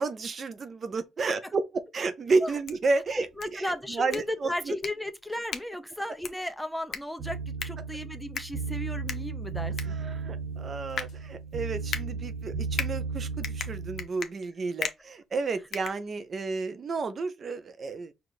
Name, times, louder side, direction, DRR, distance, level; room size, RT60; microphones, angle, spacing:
voice 1, 0.0-1.6 1.9-3.3 3.9-4.7 10.0-18.1, right 4 dB, 45° right, 0.5 m, -31 dB
sound 1, 2.4-16.6, left 6 dB, 55° left, 0.7 m, -40 dB
voice 2, 3.4-10.0, left 1 dB, 5° left, 0.6 m, -35 dB
sound 2, 7.2-14.0, right 5 dB, 70° right, 1.1 m, -35 dB
4.7 x 2.4 x 4.0 m
cardioid pair, 90°, 0 cm